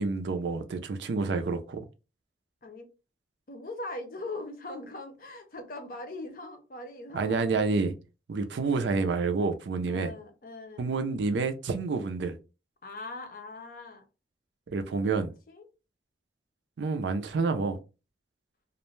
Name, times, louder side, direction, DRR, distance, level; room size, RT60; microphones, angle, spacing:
voice 1, 0.0-1.8 7.1-7.9 8.3-10.1 10.8-12.4 14.7-15.3 16.8-17.8, right 4 dB, 80° right, 0.4 m, -28 dB
voice 2, 3.5-7.7 9.9-10.9 12.8-14.0 15.5-15.7, left 2 dB, 50° left, 0.6 m, -41 dB
2.5 x 2.1 x 3.0 m
head